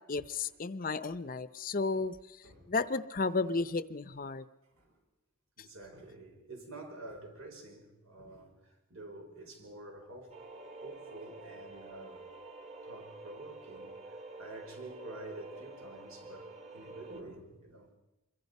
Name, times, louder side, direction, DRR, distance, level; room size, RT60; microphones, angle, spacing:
voice 1, 0.1-4.5, left 3 dB, 40° left, 0.7 m, -33 dB
voice 2, 5.6-10.4 10.8-12.2 12.8-17.9, right 2 dB, 85° right, 5.5 m, -49 dB
sound 1, 10.3-17.2, right 2 dB, 35° right, 1.9 m, -48 dB
26.0 x 23.0 x 5.4 m
head